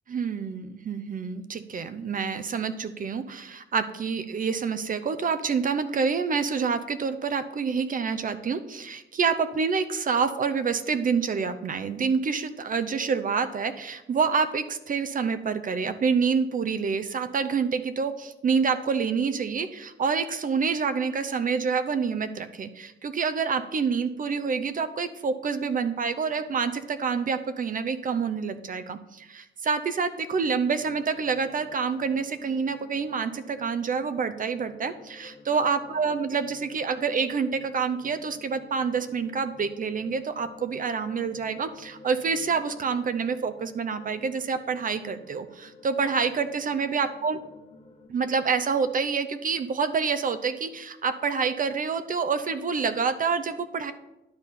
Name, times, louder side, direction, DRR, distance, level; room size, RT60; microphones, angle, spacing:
voice 1, 0.1-47.4 48.1-53.9, right 5 dB, 45° right, 11 dB, 0.6 m, -27 dB
sound 1, 30.3-48.1, left 3 dB, 30° left, 1.5 m, -51 dB
10.5 x 4.1 x 6.8 m, 0.96 s
cardioid pair, 125°, 20 cm